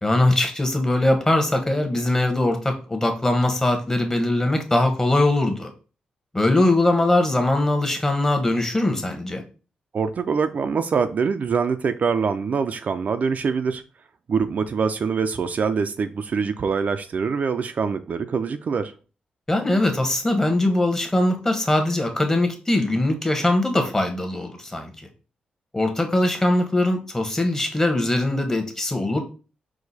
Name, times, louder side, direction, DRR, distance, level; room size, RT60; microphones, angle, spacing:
voice 1, 0.0-5.7 6.3-9.4 19.5-25.1 25.7-29.2, left 1 dB, 15° left, 1.1 m, -21 dB
voice 2, 9.9-13.8 14.3-18.9, right 5 dB, 55° right, 0.4 m, -24 dB
4.8 x 2.2 x 4.1 m
cardioid pair, 70°, 3 cm